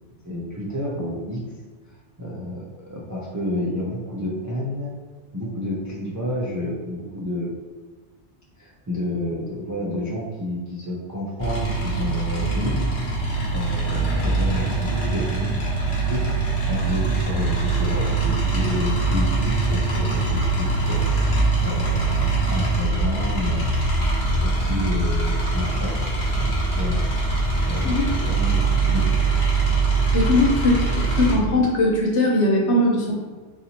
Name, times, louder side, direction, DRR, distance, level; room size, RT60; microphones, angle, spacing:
voice 1, 0.2-1.4 2.2-4.9 5.3-7.5 8.6-12.9 13.5-16.3 16.7-21.0 21.6-23.6 24.4-26.0 26.3-27.0 27.6-29.1, left 1 dB, 25° right, -6 dB, 0.4 m, -30 dB
sound 1, 11.4-31.4, right 3 dB, 45° left, 1.1 m, -22 dB
voice 2, 30.1-33.1, left 2 dB, 75° left, -2 dB, 1.1 m, -20 dB
4.0 x 2.7 x 2.8 m, 1.4 s
omnidirectional pair, 1.2 m